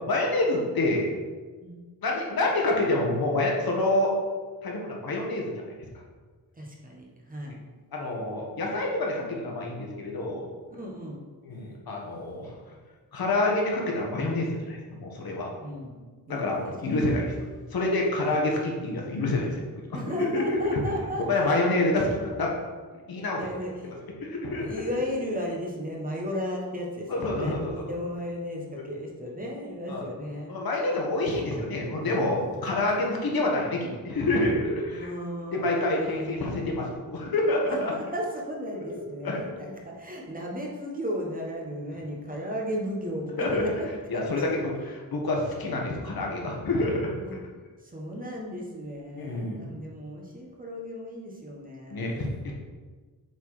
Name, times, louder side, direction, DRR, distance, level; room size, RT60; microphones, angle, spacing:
voice 1, 0.1-1.1 2.0-4.1 4.6-5.6 7.9-10.5 11.4-12.5 13.1-15.5 16.3-17.2 17.7-19.6 20.2-20.8 21.3-22.5 23.1-23.4 23.8-23.9 24.2-24.8 27.1-27.8 29.9-30.0 30.5-35.1 35.5-37.9 38.9-39.4 43.4-43.7 44.1-47.2 49.1-49.7 51.9-52.5, left 2 dB, 70° left, -1 dB, 1.4 m, -27 dB
voice 2, 6.6-7.6 10.7-11.2 15.6-16.0 16.3-17.1 18.2-18.4 19.9-21.5 23.0-23.9 24.6-30.5 34.9-36.4 37.7-43.9 44.1-44.6 47.3-47.4 47.8-52.3, equal, 20° right, -1 dB, 1.1 m, -35 dB
7.0 x 4.1 x 4.9 m, 1.4 s
wide cardioid pair, 160°, 38 cm